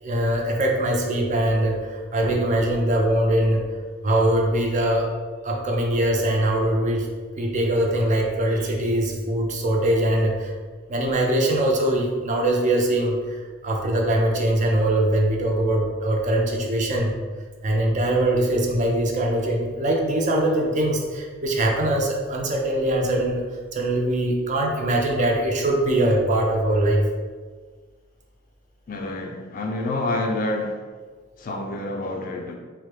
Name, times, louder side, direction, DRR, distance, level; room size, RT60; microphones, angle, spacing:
voice 1, 0.0-3.6 4.0-5.1 5.4-10.5 10.9-17.1 17.6-23.4 23.7-27.0, right 1 dB, 35° right, 0 dB, 0.4 m, -22 dB
voice 2, 28.9-30.9 31.4-32.6, left 2 dB, 40° left, 2 dB, 0.3 m, -28 dB
3.1 x 2.1 x 3.1 m, 1.5 s
head